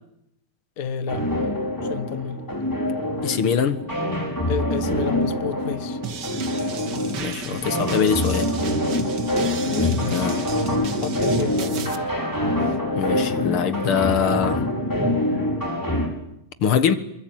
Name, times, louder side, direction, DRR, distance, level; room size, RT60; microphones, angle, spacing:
voice 1, 0.8-1.3 1.9-2.4 4.5-6.0 9.7-10.3 11.0-12.1 12.6-12.7, left 6 dB, 45° left, 1.6 m, -31 dB
sound 1, 1.1-16.1, left 1 dB, 10° left, 5.4 m, -25 dB
voice 2, 3.2-3.8 7.2-8.5 9.8-10.4 12.9-14.7 16.6-17.0, left 7 dB, 80° left, 2.4 m, -23 dB
sound 2, 6.0-12.0, right 6 dB, 55° right, 2.0 m, -34 dB
27.0 x 23.5 x 9.2 m
omnidirectional pair, 2.3 m